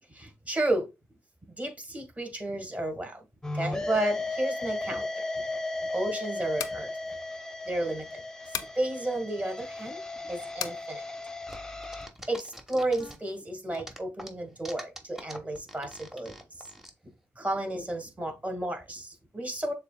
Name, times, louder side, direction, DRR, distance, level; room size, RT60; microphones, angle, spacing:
voice 1, 0.1-0.9 1.6-3.2 3.5-5.3 5.6-7.0 7.6-8.2 8.7-11.0 12.3-16.7 17.3-19.7, right 1 dB, 25° right, 1.7 m, -32 dB
sound 1, 3.4-12.1, left 2 dB, 10° left, 0.7 m, -36 dB
sound 2, 6.5-6.8 8.5-8.8 10.6-10.8, left 9 dB, 80° left, 0.4 m, -34 dB
sound 3, 11.5-13.4 13.7-16.9, equal, 5° right, 1.0 m, -44 dB
6.8 x 2.5 x 2.2 m
supercardioid pair, 55°, 6 cm